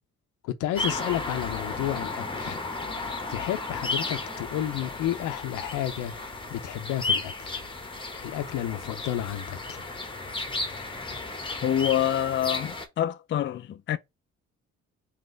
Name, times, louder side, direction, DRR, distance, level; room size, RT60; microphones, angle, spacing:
voice 1, 0.4-2.6 3.3-6.1 6.5-7.6 8.1-9.8, left 12 dB, 85° left, 0.6 m, -31 dB
sound 1, 0.8-12.9, left 3 dB, 15° left, 1.0 m, -34 dB
voice 2, 11.6-14.0, left 11 dB, 40° left, 0.4 m, -26 dB
4.0 x 3.0 x 3.7 m
cardioid pair, 90°, 30 cm